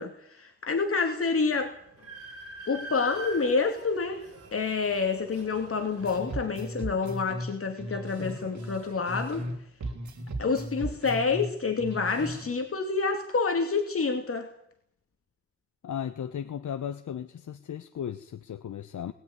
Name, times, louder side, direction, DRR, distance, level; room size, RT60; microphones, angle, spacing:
voice 1, 0.0-1.7 2.7-4.2 4.5-9.4 10.4-14.5, left 4 dB, 50° left, 4 dB, 2.6 m, -28 dB
Train, 1.6-6.2, equal, 55° right, 8.0 m, -43 dB
sound 1, 6.0-9.5 9.8-12.5, right 1 dB, 75° right, 5.1 m, -37 dB
voice 2, 15.8-19.1, left 9 dB, 90° left, 9 dB, 1.1 m, -36 dB
21.5 x 16.5 x 9.6 m, 0.72 s
wide cardioid pair, 125°, 29 cm